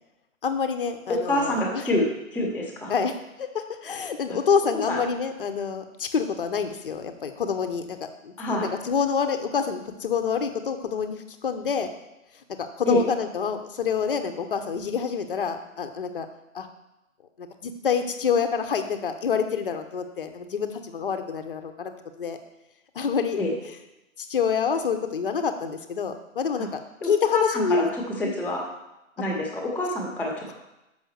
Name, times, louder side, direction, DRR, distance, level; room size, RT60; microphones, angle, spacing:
voice 1, 0.4-1.9 2.9-11.9 12.6-16.3 16.5-16.7 17.4-21.9 22.2-22.4 22.9-23.4 24.2-27.9 28.2-28.4, left 6 dB, 40° left, 7 dB, 0.7 m, -27 dB
voice 2, 1.1-2.9 4.7-5.0 8.4-8.7 12.9-13.0 23.4-23.5 26.6-26.7 27.0-28.7 29.2-30.5, left 1 dB, 5° right, -18 dB, 0.7 m, -27 dB
6.7 x 5.6 x 6.3 m, 0.94 s
hypercardioid pair, 170°, 41 cm